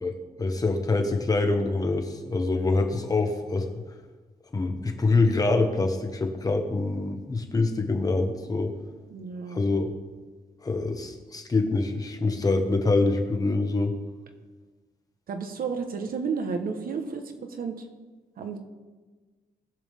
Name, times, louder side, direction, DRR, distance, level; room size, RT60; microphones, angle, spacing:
voice 1, 0.0-3.7 4.5-8.7 9.5-9.9 10.6-13.9, left 3 dB, 25° left, 4 dB, 1.2 m, -25 dB
voice 2, 9.1-9.6 15.3-17.9 18.4-18.6, right 5 dB, 75° right, 6 dB, 1.3 m, -32 dB
20.5 x 7.4 x 3.7 m, 1.3 s
wide cardioid pair, 180°, 15 cm